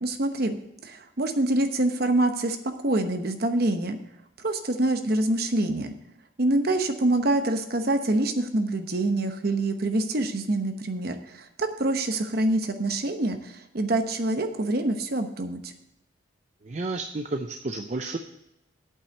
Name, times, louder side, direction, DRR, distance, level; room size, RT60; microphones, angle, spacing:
voice 1, 0.0-4.0 4.4-5.9 6.4-15.7, right 2 dB, 50° right, 7 dB, 0.9 m, -26 dB
voice 2, 16.6-18.2, right 3 dB, 35° right, 6 dB, 0.5 m, -31 dB
8.6 x 5.7 x 7.8 m, 0.83 s
head